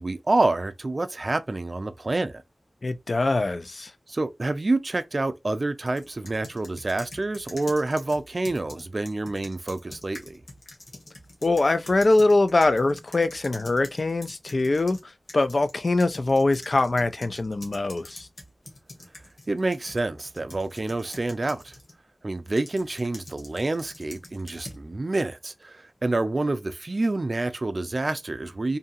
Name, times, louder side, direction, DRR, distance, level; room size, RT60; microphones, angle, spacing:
voice 1, 0.0-2.4 4.1-10.4 19.5-21.7 22.2-28.8, right 2 dB, 50° right, 0.4 m, -27 dB
voice 2, 2.8-3.9 11.4-18.3, left 2 dB, 60° left, 0.3 m, -23 dB
sound 1, 5.9-15.0 15.3-22.0 22.6-24.8, left 2 dB, 90° left, 0.9 m, -46 dB
2.6 x 2.3 x 2.6 m
wide cardioid pair, 55°, 0 cm